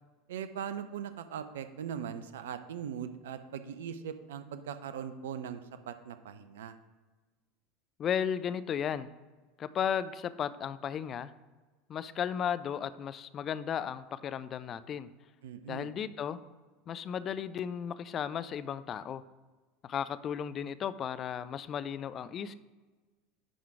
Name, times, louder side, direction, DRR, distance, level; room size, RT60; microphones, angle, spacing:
voice 1, 0.3-5.6 5.9-6.7 15.4-15.9, right 8 dB, 65° right, 11 dB, 0.5 m, -40 dB
voice 2, 8.0-9.1 9.6-11.3 11.9-15.1 15.7-16.4 16.9-19.2 19.8-22.5, left 8 dB, 35° left, 14 dB, 0.4 m, -35 dB
10.0 x 3.7 x 4.7 m, 1.3 s
figure-of-eight pair, 75°, 0 cm